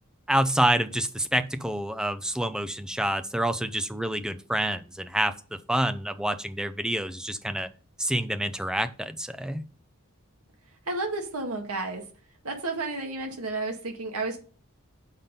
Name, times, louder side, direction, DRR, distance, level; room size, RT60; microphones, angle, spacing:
voice 1, 0.3-7.7 8.0-9.6, right 1 dB, 5° right, 10 dB, 0.5 m, -27 dB
voice 2, 10.9-12.0 12.4-14.4, right 3 dB, 90° right, 3 dB, 1.8 m, -31 dB
7.1 x 5.8 x 5.3 m, 0.38 s
head